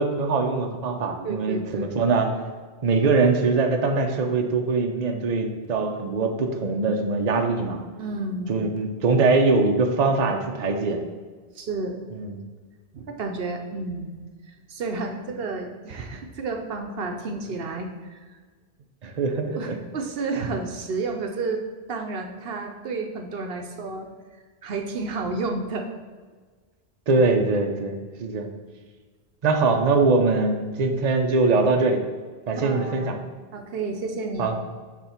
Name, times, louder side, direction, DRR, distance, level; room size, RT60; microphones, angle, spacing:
voice 1, 0.0-2.3 2.8-7.8 8.5-11.0 12.1-12.4 19.0-19.8 27.1-28.5 29.4-32.0 32.5-33.2 34.4-34.6, right 3 dB, 45° right, 3 dB, 0.8 m, -22 dB
voice 2, 1.2-1.9 8.0-8.6 11.5-12.0 12.9-14.2 14.5-18.2 19.5-21.6 21.9-24.1 24.6-25.9 32.5-33.1 33.5-34.5, right 3 dB, 70° right, 4 dB, 0.9 m, -31 dB
7.2 x 3.4 x 5.7 m, 1.5 s
omnidirectional pair, 1.1 m